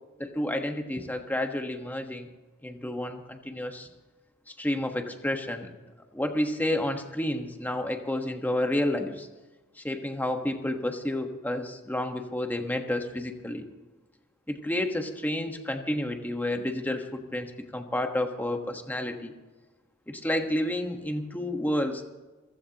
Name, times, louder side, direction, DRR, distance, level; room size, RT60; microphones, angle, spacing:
voice 1, 0.2-2.3 2.6-3.9 4.5-5.7 6.1-9.3 9.8-13.6 14.5-19.3 20.1-22.0, left 1 dB, 10° left, 5 dB, 1.3 m, -30 dB
29.0 x 15.5 x 3.0 m, 1.2 s
head